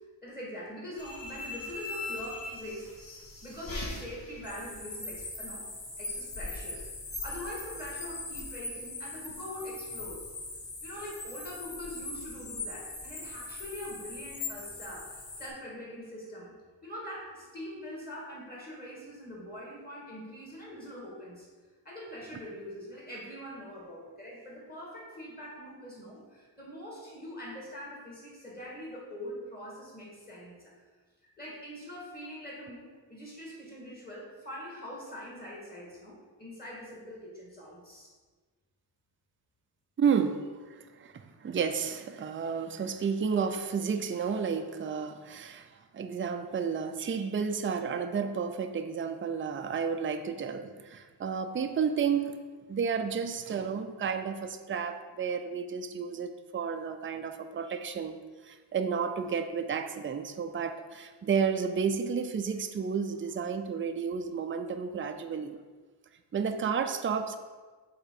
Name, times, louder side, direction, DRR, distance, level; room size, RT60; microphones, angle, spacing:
voice 1, 0.2-2.9 3.4-5.7 6.0-6.8 7.2-10.3 10.8-16.6 16.8-21.5 21.8-30.7 31.4-38.1, equal, 20° left, -4 dB, 2.3 m, -43 dB
sound 1, 1.0-15.5, left 3 dB, 55° left, 1.5 m, -40 dB
voice 2, 40.0-52.3 52.7-58.2 58.4-65.6 66.3-67.4, right 6 dB, 30° right, 7 dB, 0.4 m, -31 dB
8.0 x 3.7 x 5.8 m, 1.4 s
wide cardioid pair, 150°, 41 cm